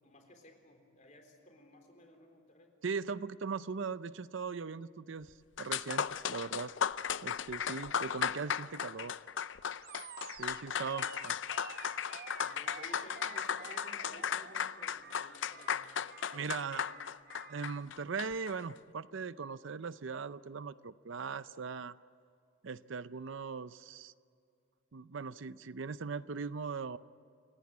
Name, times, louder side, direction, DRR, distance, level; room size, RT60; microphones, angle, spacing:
voice 1, 0.0-2.7 10.9-11.1 12.4-16.0 16.6-17.0, left 1 dB, 35° left, 4 dB, 3.8 m, -56 dB
voice 2, 2.8-6.7 7.2-9.1 10.4-11.4 16.3-16.9 17.5-21.9 22.6-24.1 24.9-27.0, right 5 dB, 70° right, 15 dB, 0.6 m, -39 dB
sound 1, 5.3-5.4 5.6-18.5, left 8 dB, 65° left, 0.5 m, -36 dB
Animal, 9.8-17.8, right 6 dB, 45° right, 1.0 m, -51 dB
28.5 x 17.0 x 9.4 m, 2.4 s
head